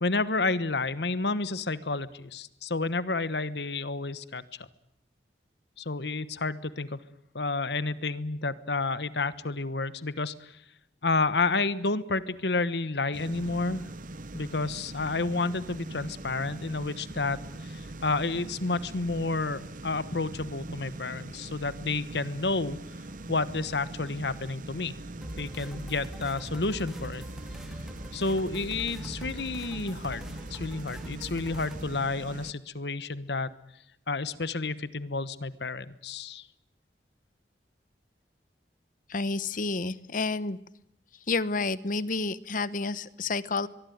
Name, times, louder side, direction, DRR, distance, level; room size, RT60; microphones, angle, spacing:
voice 1, 0.0-4.7 5.8-7.0 7.3-10.6 11.0-13.9 14.3-22.8 23.3-24.9 25.4-27.2 28.1-33.5 34.1-36.5, left 3 dB, 70° left, 15 dB, 1.2 m, -30 dB
sound 1, 13.1-32.5, right 2 dB, 50° right, 1.0 m, -42 dB
sound 2, 25.2-31.9, equal, 5° right, 2.0 m, -43 dB
voice 2, 39.1-40.6 41.3-43.7, left 3 dB, 50° left, 16 dB, 1.0 m, -30 dB
24.0 x 23.0 x 9.4 m, 0.77 s
head